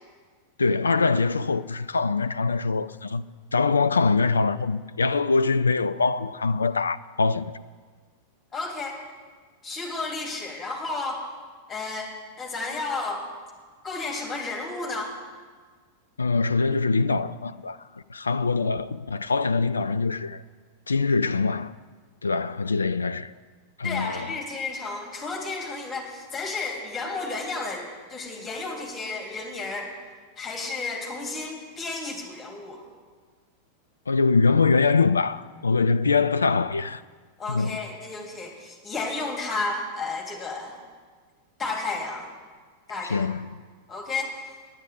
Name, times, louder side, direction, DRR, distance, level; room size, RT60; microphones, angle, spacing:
voice 1, 0.6-3.2 3.5-7.5 16.2-17.8 18.1-20.4 20.9-21.7 22.2-23.3 23.8-24.4 34.1-37.0 37.5-37.8 43.1-43.5, left 4 dB, 75° left, 0.4 m, -23 dB
voice 2, 8.5-9.0 9.6-11.3 11.7-12.1 12.4-13.3 13.8-15.2 23.8-29.9 30.4-32.8 37.4-40.8 41.6-42.3 42.9-43.3 43.9-44.5, left 3 dB, 15° left, 3.2 m, -32 dB
9.9 x 9.9 x 9.6 m
figure-of-eight pair, 90°, 0 cm